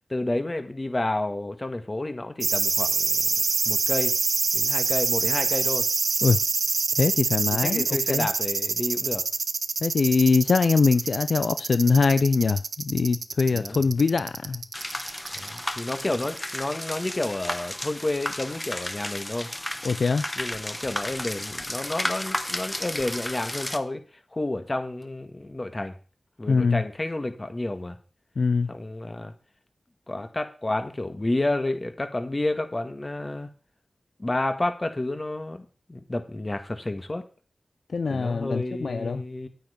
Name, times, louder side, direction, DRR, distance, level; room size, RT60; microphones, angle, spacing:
voice 1, 0.1-3.2 3.7-4.1 4.5-5.9 7.6-9.2 13.5-13.8 15.3-19.5 20.4-24.0 24.3-25.9 26.4-28.0 28.7-29.3 30.1-33.5 34.2-37.2 38.1-39.5, left 2 dB, 35° left, 1.8 m, -30 dB
sound 1, 2.4-16.5 16.8-16.9, right 4 dB, 80° right, 0.7 m, -26 dB
voice 2, 7.0-8.3 9.8-14.6 19.8-20.2 26.5-26.8 28.4-28.7 37.9-39.2, left 4 dB, 80° left, 0.4 m, -22 dB
sound 2, 14.7-23.8, left 1 dB, 20° left, 1.2 m, -33 dB
9.4 x 9.0 x 5.1 m
cardioid pair, 45°, 0 cm